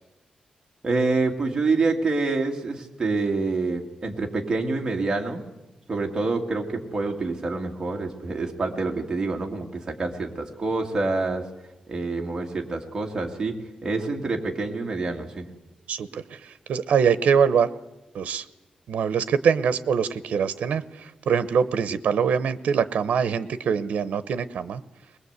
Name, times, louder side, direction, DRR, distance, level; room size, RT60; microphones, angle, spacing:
voice 1, 0.8-5.4 5.9-11.5 11.9-13.6 13.8-15.5, right 3 dB, 25° right, 1 dB, 2.3 m, -27 dB
voice 2, 15.9-17.7 18.1-18.4 18.9-24.8, right 7 dB, 85° right, 14 dB, 0.9 m, -23 dB
21.5 x 20.5 x 8.1 m, 1.0 s
wide cardioid pair, 175°, 2 cm